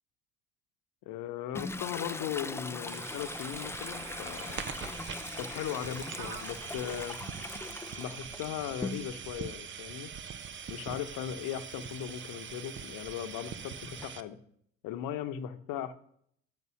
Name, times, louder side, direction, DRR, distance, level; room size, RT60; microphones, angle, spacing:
voice 1, 1.0-4.6 5.4-7.2 8.0-10.1 10.7-14.4 14.8-15.9, left 10 dB, 55° left, 11 dB, 1.0 m, -38 dB
Toilet flush, 1.5-9.4 9.8-14.1, left 2 dB, 5° left, 0.5 m, -42 dB
sound 1, 2.9-14.2, right 7 dB, 30° right, 0.8 m, -43 dB
sound 2, 4.3-8.3 8.9-9.0, right 6 dB, 85° right, 1.0 m, -48 dB
9.0 x 8.2 x 6.3 m, 0.65 s
figure-of-eight pair, 60°, 40 cm